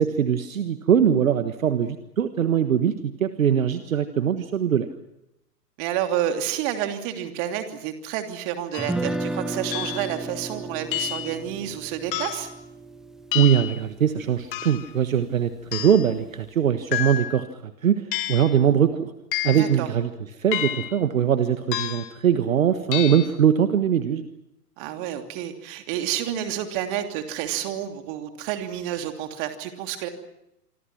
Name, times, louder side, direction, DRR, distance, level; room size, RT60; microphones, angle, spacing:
voice 1, 0.0-4.9 13.3-18.0 18.3-19.1 19.4-20.1 20.4-24.3, right 8 dB, 55° right, 10 dB, 1.6 m, -21 dB
voice 2, 5.8-12.5 19.5-19.9 24.8-30.1, right 11 dB, 30° right, 6 dB, 3.0 m, -29 dB
sound 1, 8.7-9.0 9.7-10.1 10.9-11.4 12.1-12.5 13.3-13.8 14.5-14.9 15.7-16.1 16.9-17.4 18.1-18.5 19.3-19.7 20.5-21.0 21.7-22.2 22.9-23.3, left 14 dB, 35° left, 1.4 m, -30 dB
Guitar, 8.8-14.9, right 2 dB, ahead, 0.8 m, -34 dB
27.0 x 24.5 x 6.0 m, 0.85 s
figure-of-eight pair, 115°, 47 cm